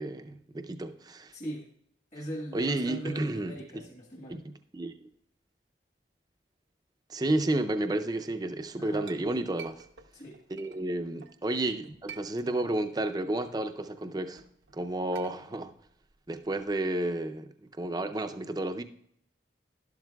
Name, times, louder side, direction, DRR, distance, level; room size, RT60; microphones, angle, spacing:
voice 1, 0.0-1.3 2.5-3.8 4.3-5.0 7.1-9.8 10.5-14.4 14.7-15.7 16.3-18.8, right 2 dB, 20° right, 0.5 m, -31 dB
voice 2, 1.3-1.7 2.1-4.4 8.8-9.1 10.1-10.4, equal, 40° left, 1.4 m, -40 dB
Chink clink, 8.5-11.4 11.8-12.9 13.2-17.3, right 6 dB, 90° right, 0.8 m, -51 dB
12.0 x 11.5 x 2.3 m
head